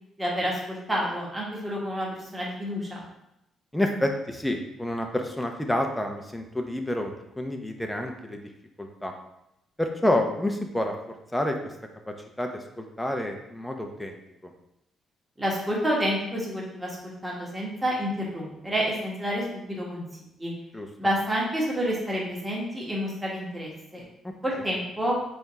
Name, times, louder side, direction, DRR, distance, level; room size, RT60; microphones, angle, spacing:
voice 1, 0.2-3.0 15.4-17.0 17.2-20.0 20.4-20.5 21.0-24.0 24.4-25.2, equal, 10° right, -4 dB, 1.4 m, -29 dB
voice 2, 3.7-8.4 8.8-9.1 9.8-10.9 11.3-11.6 12.4-14.2 20.7-20.9, left 1 dB, 5° left, 3 dB, 0.7 m, -28 dB
3.5 x 3.5 x 4.2 m, 0.86 s
cardioid pair, 90°, 0 cm